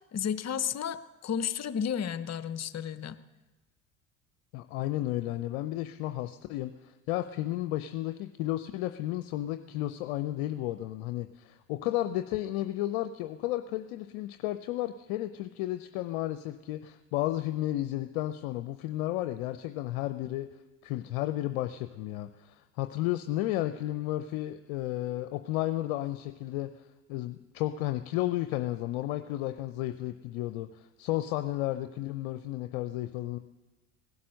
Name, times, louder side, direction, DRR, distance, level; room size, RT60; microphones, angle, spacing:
voice 1, 0.1-3.2, left 8 dB, 40° left, 13 dB, 0.9 m, -32 dB
voice 2, 4.5-20.5 20.8-26.7 27.1-33.4, left 15 dB, 70° left, 9 dB, 0.7 m, -33 dB
18.5 x 11.0 x 6.4 m, 1.2 s
hypercardioid pair, 60°, 42 cm